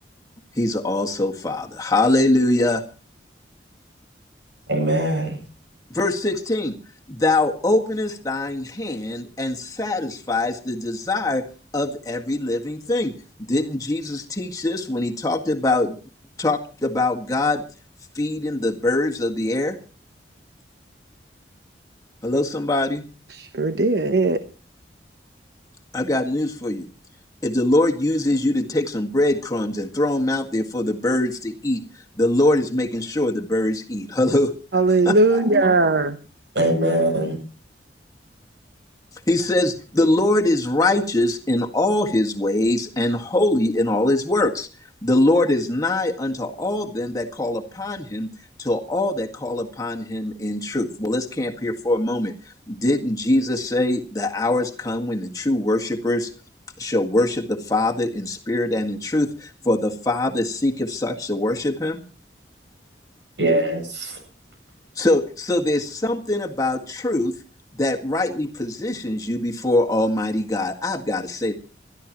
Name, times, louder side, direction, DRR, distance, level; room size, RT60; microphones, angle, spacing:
voice 1, 0.5-2.8 5.9-6.8 7.1-11.4 11.7-13.1 13.4-16.0 16.4-17.6 18.1-19.8 22.2-23.0 25.9-26.9 27.4-31.8 32.2-34.5 35.0-35.4 39.3-44.7 45.0-48.3 48.6-56.3 56.8-62.0 64.9-67.3 67.8-71.5, left 2 dB, 20° left, 1.8 m, -23 dB
voice 2, 4.7-5.4 36.6-37.4 63.4-64.2, right 1 dB, 85° right, 7.8 m, -21 dB
voice 3, 23.3-24.4 34.7-36.2, right 2 dB, 70° right, 0.9 m, -19 dB
28.0 x 13.0 x 3.0 m
head